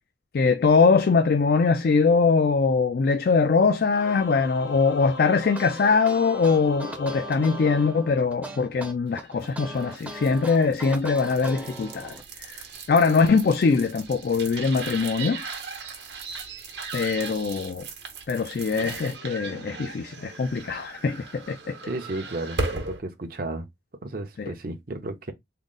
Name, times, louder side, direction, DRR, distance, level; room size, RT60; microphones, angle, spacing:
voice 1, 0.3-15.4 16.9-17.9 18.3-21.8 24.4-24.5, left 4 dB, 55° left, 0.3 m, -22 dB
Singing / Musical instrument, 3.9-8.7, left 2 dB, 85° left, 0.7 m, -40 dB
sound 1, 5.4-12.2, right 1 dB, 10° right, 0.6 m, -39 dB
sound 2, 9.3-23.0, right 3 dB, 65° right, 1.0 m, -37 dB
voice 2, 21.9-23.7 24.0-25.3, right 2 dB, 50° right, 0.6 m, -33 dB
3.7 x 2.0 x 3.7 m
head